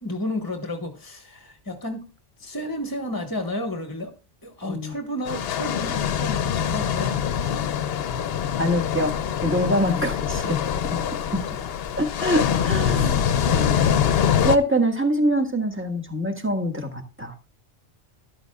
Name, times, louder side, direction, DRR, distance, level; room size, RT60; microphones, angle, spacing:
voice 1, 0.0-2.0 2.4-4.1 4.4-7.3 11.5-11.7 12.9-13.6, left 1 dB, 20° left, 4 dB, 1.3 m, -32 dB
sound 1, 5.3-14.6, left 8 dB, 65° left, 0.8 m, -24 dB
voice 2, 8.6-10.6 10.9-11.0 11.3-11.4 12.0-17.3, equal, 10° right, 4 dB, 1.5 m, -25 dB
13.5 x 11.5 x 2.3 m, 0.31 s
omnidirectional pair, 1.2 m